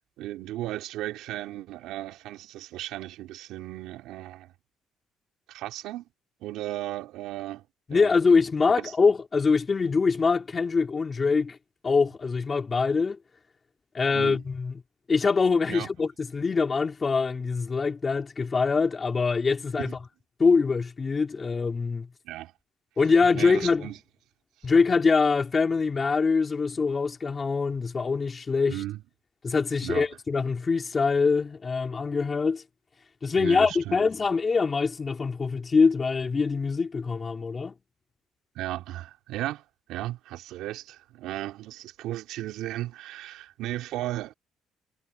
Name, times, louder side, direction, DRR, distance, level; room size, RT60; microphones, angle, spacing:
voice 1, 0.2-4.5 5.5-6.1 6.4-8.1 8.8-8.9 12.0-12.1 14.1-14.4 15.7-15.9 19.8-19.9 22.2-22.5 23.3-24.0 28.7-29.0 29.8-30.1 33.4-34.1 38.6-39.6 39.9-44.3, right 15 dB, 80° right, 3.9 m, -35 dB
voice 2, 7.9-11.6 11.8-13.2 13.9-14.8 15.1-19.9 20.4-22.1 23.0-23.9 24.6-28.8 29.4-32.6 33.2-37.7, left 4 dB, 30° left, 3.6 m, -24 dB
cardioid pair, 90°, 0 cm